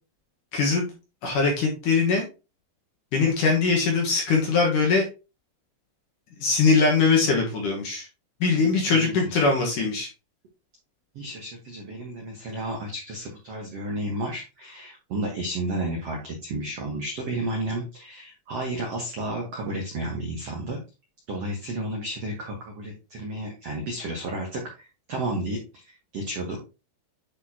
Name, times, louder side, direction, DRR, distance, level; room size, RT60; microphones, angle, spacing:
voice 1, 0.5-0.9 1.2-2.2 3.1-5.1 6.4-8.1 8.4-10.1, left 4 dB, 65° left, 0 dB, 2.3 m, -21 dB
voice 2, 8.6-9.3 11.1-20.8 21.3-25.8 26.1-26.6, right 1 dB, 85° right, -1 dB, 1.3 m, -32 dB
9.9 x 4.2 x 2.8 m, 0.30 s
omnidirectional pair, 5.1 m